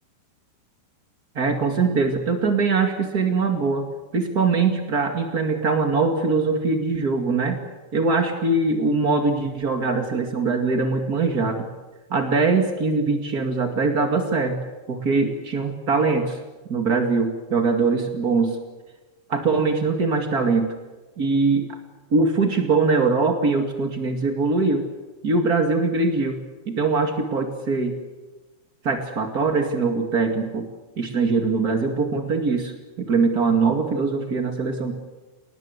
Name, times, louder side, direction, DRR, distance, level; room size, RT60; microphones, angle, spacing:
voice 1, 1.3-7.6 7.9-11.6 12.1-14.6 14.9-16.4 16.7-18.5 19.3-20.7 21.2-21.8 22.1-24.8 25.2-26.4 26.6-27.9 28.8-30.7 30.9-34.9, right 4 dB, 55° right, 5 dB, 1.0 m, -22 dB
29.5 x 20.0 x 8.1 m, 1.2 s
omnidirectional pair, 5.7 m